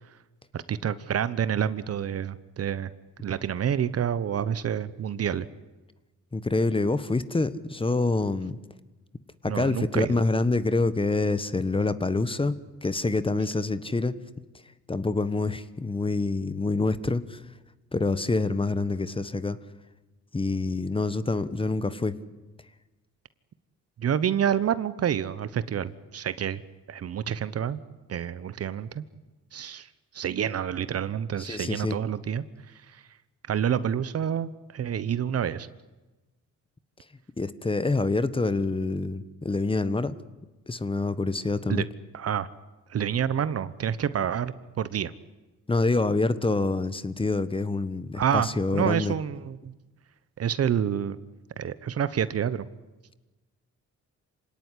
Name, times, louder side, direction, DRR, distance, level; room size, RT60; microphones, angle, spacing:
voice 1, 0.5-2.9 3.2-5.5 9.4-10.2 24.0-26.6 26.9-27.8 28.1-29.0 29.5-29.9 30.1-32.4 32.9-33.0 33.5-35.7 41.7-41.8 42.1-42.5 42.9-45.1 48.1-48.5 48.7-49.7 50.4-51.2 51.6-52.7, right 9 dB, 55° right, 16 dB, 1.1 m, -28 dB
voice 2, 6.3-8.6 9.4-12.5 12.8-14.2 14.9-17.4 17.9-19.6 20.3-22.1 31.4-32.0 37.4-40.1 40.7-41.8 45.7-49.1, left 3 dB, 15° left, 14 dB, 1.2 m, -26 dB
26.5 x 18.0 x 9.9 m, 1.1 s
cardioid pair, 90°, 30 cm